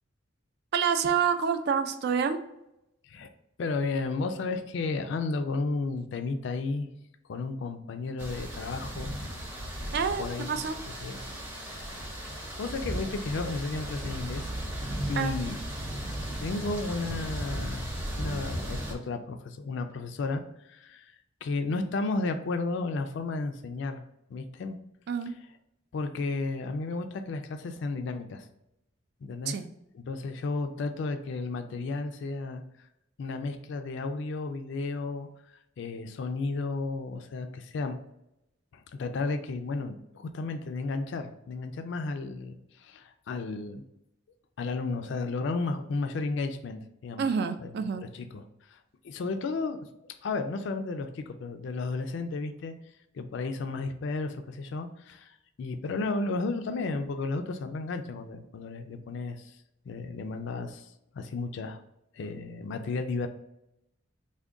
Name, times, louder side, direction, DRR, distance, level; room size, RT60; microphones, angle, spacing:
voice 1, 0.7-2.4 9.9-10.8 15.2-15.3 25.1-25.3 29.5-29.7 47.2-48.0, right 6 dB, 55° right, 9 dB, 0.3 m, -28 dB
voice 2, 3.6-6.9 7.3-9.2 10.2-10.6 11.0-11.2 11.5-12.1 12.6-14.5 15.1-15.6 16.4-17.9 18.2-21.1 21.4-24.0 24.3-24.8 25.3-25.4 25.9-28.5 29.2-29.6 29.9-32.6 33.2-38.0 38.7-43.8 44.6-47.3 47.6-47.7 48.0-48.8 49.0-49.8 50.2-52.7 53.1-59.6 59.9-60.9 61.1-61.8 62.1-63.3, left 3 dB, 60° left, 7 dB, 0.3 m, -33 dB
sound 1, 8.2-18.9, right 1 dB, 10° right, 0.6 m, -36 dB
3.6 x 2.2 x 3.6 m, 0.84 s
head